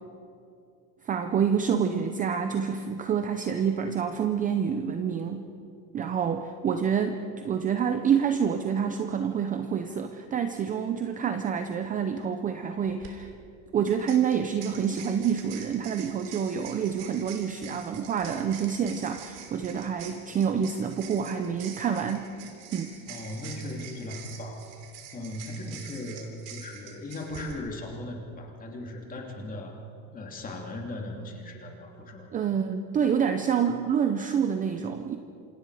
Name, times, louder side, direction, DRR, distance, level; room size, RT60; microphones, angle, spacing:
voice 1, 1.0-5.5 5.9-13.3 13.7-22.3 22.7-23.0 32.3-35.2, right 7 dB, 20° right, 7 dB, 0.6 m, -27 dB
sound 1, 12.9-13.1 13.9-27.5, right 8 dB, 45° right, 3.3 m, -46 dB
voice 2, 23.1-24.7 25.1-29.8 30.1-32.3, left 1 dB, 20° left, 1 dB, 2.8 m, -38 dB
28.0 x 26.0 x 4.9 m, 2.6 s
cardioid pair, 165°, 43 cm